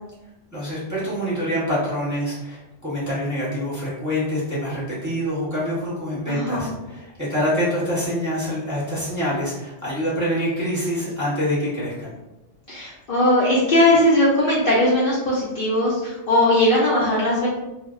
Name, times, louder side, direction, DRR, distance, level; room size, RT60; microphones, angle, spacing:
voice 1, 0.5-12.1, equal, 15° right, -10 dB, 0.8 m, -26 dB
voice 2, 6.3-6.7 12.7-17.5, left 1 dB, 60° left, -6 dB, 0.6 m, -19 dB
2.1 x 2.0 x 3.5 m, 1.0 s
omnidirectional pair, 1.3 m